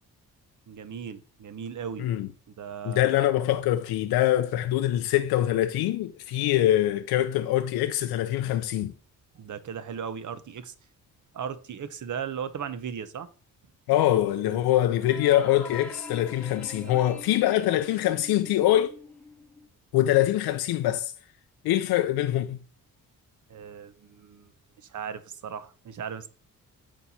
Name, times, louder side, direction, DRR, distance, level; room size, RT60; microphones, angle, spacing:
voice 1, 0.7-2.1 2.5-3.1 9.3-10.7 11.3-13.3 14.5-14.6 16.8-17.0 23.5-24.5 24.8-26.3, right 7 dB, 55° right, 0.8 m, -37 dB
voice 2, 2.8-8.9 13.9-18.9 19.9-21.1 21.6-22.6, left 13 dB, 85° left, 0.5 m, -24 dB
sound 1, 14.9-19.7, left 3 dB, 5° left, 1.0 m, -45 dB
8.1 x 3.0 x 4.1 m
cardioid pair, 65°, 37 cm